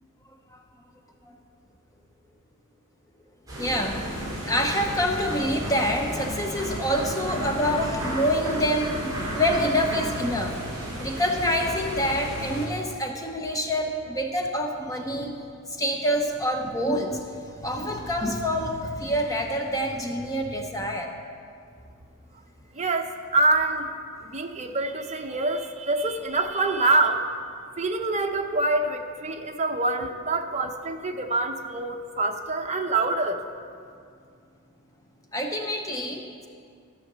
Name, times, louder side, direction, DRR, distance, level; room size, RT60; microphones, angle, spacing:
sound 1, 3.5-12.7, right 1 dB, 15° right, 3.4 m, -33 dB
voice 1, 3.6-10.6 11.0-21.1 35.3-36.5, equal, 15° left, 2 dB, 0.8 m, -27 dB
voice 2, 22.7-23.9 24.2-27.2 27.8-33.4, right 2 dB, 30° right, 4 dB, 0.7 m, -25 dB
14.0 x 5.8 x 6.7 m, 2.3 s
head